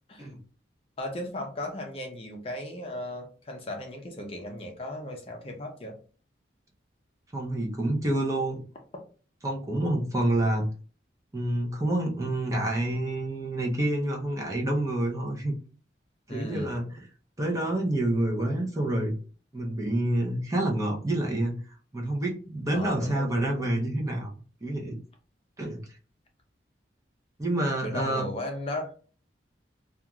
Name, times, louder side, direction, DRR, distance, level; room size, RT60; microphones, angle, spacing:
voice 1, 1.0-5.9 16.3-16.7 22.7-23.5 27.8-28.9, left 1 dB, 30° left, 2 dB, 0.5 m, -36 dB
voice 2, 7.3-8.6 9.4-10.7 11.3-15.5 16.3-17.0 17.4-19.1 19.5-21.6 21.9-24.3 24.6-25.0 25.6-25.8 27.4-28.3, right 1 dB, 20° right, -1 dB, 0.5 m, -28 dB
2.4 x 2.3 x 2.9 m, 0.39 s
head